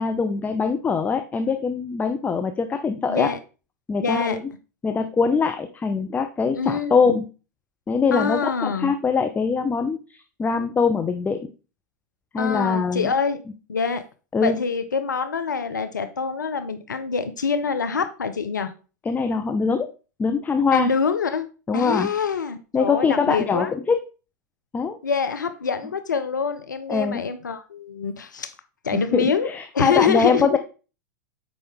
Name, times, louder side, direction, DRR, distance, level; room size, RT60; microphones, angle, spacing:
voice 1, 0.0-3.3 3.9-4.4 4.8-7.3 7.9-11.5 12.3-13.1 14.3-14.6 19.1-19.9 20.2-20.9 21.7-22.1 22.7-24.0 24.7-25.0 26.9-27.2 28.9-30.6, left 5 dB, 15° left, 8 dB, 0.6 m, -23 dB
voice 2, 4.0-4.4 6.5-7.1 8.1-8.9 12.4-13.4 13.7-14.0 14.4-18.7 20.7-21.5 21.7-23.7 25.0-28.5 28.8-29.5 29.7-30.6, left 5 dB, 85° left, 9 dB, 0.6 m, -25 dB
6.8 x 5.0 x 3.7 m, 0.34 s
hypercardioid pair, 95°, 10 cm